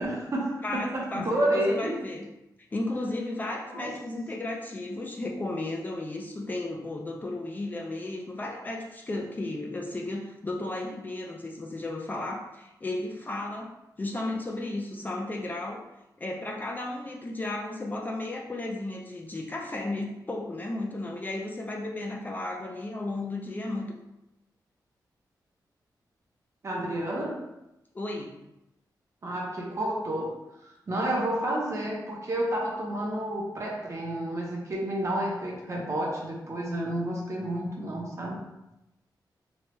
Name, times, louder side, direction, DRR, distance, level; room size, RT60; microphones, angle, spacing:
voice 1, 0.0-2.0 3.7-3.9 26.6-27.4 29.2-30.3 30.6-38.4, right 1 dB, 45° right, -2 dB, 0.7 m, -30 dB
voice 2, 0.6-2.3 2.7-15.8 16.2-24.0 27.9-28.4, left 2 dB, 25° left, 0 dB, 0.3 m, -34 dB
3.1 x 2.2 x 2.9 m, 0.90 s
wide cardioid pair, 130°, 7 cm